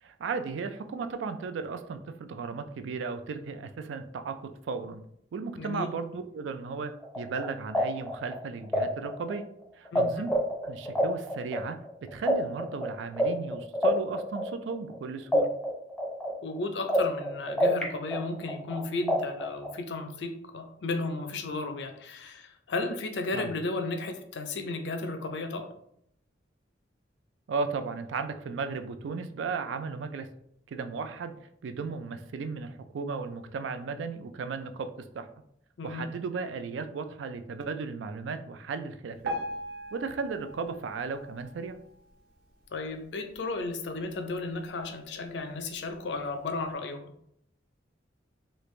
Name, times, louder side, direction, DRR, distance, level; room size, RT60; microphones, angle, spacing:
voice 1, 0.0-4.4 4.7-5.0 5.3-9.4 9.8-10.3 10.6-11.8 12.1-15.5 23.3-23.5 27.5-30.3 30.7-31.3 31.6-34.9 35.1-35.3 35.8-39.4 39.9-41.8, right 4 dB, 75° right, 9 dB, 0.3 m, -35 dB
sound 1, 7.0-10.0 10.3-15.0 15.3-17.8 18.1-19.8, equal, 5° left, 0.5 m, -28 dB
voice 2, 9.9-10.3 16.4-25.7 35.8-36.1 42.7-47.0, left 3 dB, 65° left, 6 dB, 0.5 m, -34 dB
Piano, 39.2-42.3 42.9-43.0 43.3-43.4 44.1-44.2 44.8-44.9, right 1 dB, 55° right, 0.9 m, -39 dB
3.2 x 2.4 x 3.1 m, 0.71 s
head